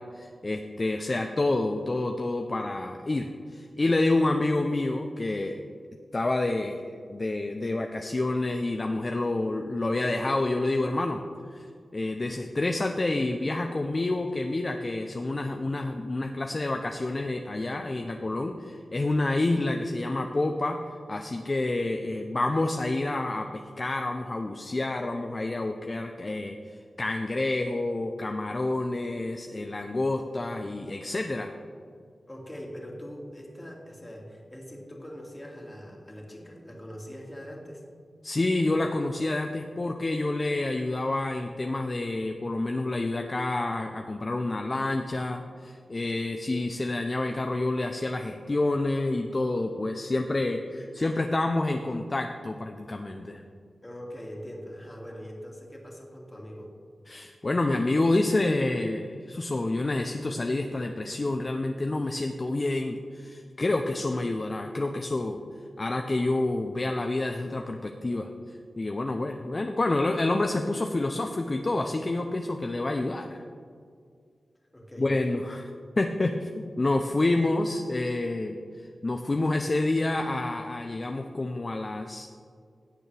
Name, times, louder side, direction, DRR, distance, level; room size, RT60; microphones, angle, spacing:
voice 1, 0.0-5.5 6.1-11.2 11.5-11.7 11.9-20.8 21.1-31.5 38.2-53.4 57.1-65.4 65.8-73.4 75.0-75.6 76.0-82.3, left 2 dB, 40° left, 4 dB, 0.6 m, -28 dB
voice 2, 32.3-37.8 53.8-56.7 74.7-75.1, equal, 20° left, -1 dB, 2.2 m, -42 dB
16.5 x 7.0 x 3.4 m, 2.2 s
wide cardioid pair, 70°, 0 cm